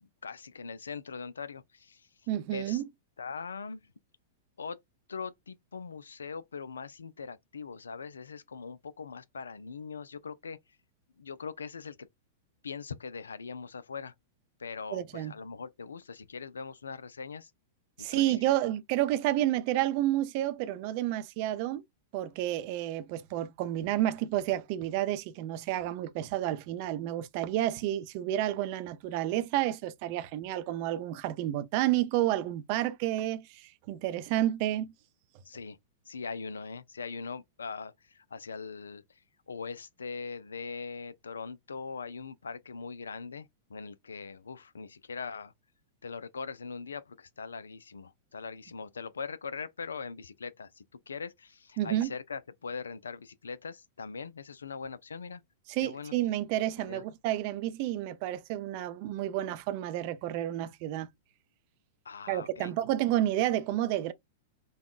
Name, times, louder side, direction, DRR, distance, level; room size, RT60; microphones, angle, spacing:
voice 1, 0.0-2.1 2.5-2.8 3.2-3.9 4.6-4.8 5.1-10.6 11.2-12.1 12.6-14.1 14.6-17.5 18.0-18.4 35.5-35.8 36.1-39.0 39.5-45.5 46.0-55.4 55.8-56.1 56.8-57.0 62.1-62.7, left 5 dB, 75° left, 0.3 m, -41 dB
voice 2, 2.3-2.8 14.9-15.3 18.0-21.8 22.1-34.9 51.8-52.1 55.7-61.1 62.3-64.1, right 13 dB, 45° right, 0.4 m, -30 dB
3.4 x 2.2 x 2.3 m
figure-of-eight pair, 100°, 0 cm